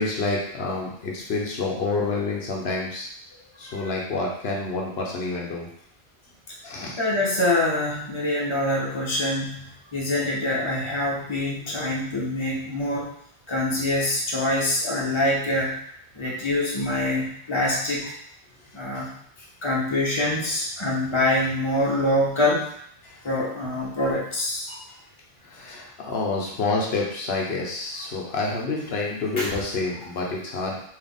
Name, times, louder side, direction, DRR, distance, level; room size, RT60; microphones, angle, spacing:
voice 1, 0.0-3.1 3.6-5.7 6.6-7.0 23.0-23.2 25.4-30.8, left 3 dB, 75° left, -2 dB, 1.0 m, -28 dB
voice 2, 7.0-13.1 13.5-15.8 16.1-18.1 18.7-19.1 19.6-22.6 23.2-24.8 29.4-29.5, left 1 dB, 30° left, -4 dB, 1.0 m, -25 dB
4.0 x 2.8 x 3.5 m, 0.66 s
omnidirectional pair, 1.1 m